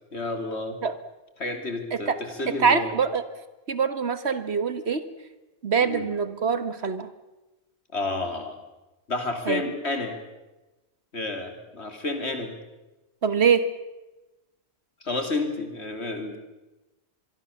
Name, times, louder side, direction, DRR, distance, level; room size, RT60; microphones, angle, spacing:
voice 1, 0.1-0.8 1.4-3.0 5.8-6.1 7.9-8.6 9.1-10.2 11.1-12.5 15.0-16.4, left 2 dB, 75° left, 5 dB, 3.5 m, -30 dB
voice 2, 2.6-3.2 3.7-5.0 5.6-7.1 9.5-9.6 13.2-13.7, right 6 dB, 70° right, 12 dB, 1.7 m, -23 dB
25.5 x 22.0 x 7.3 m, 1.1 s
omnidirectional pair, 1.1 m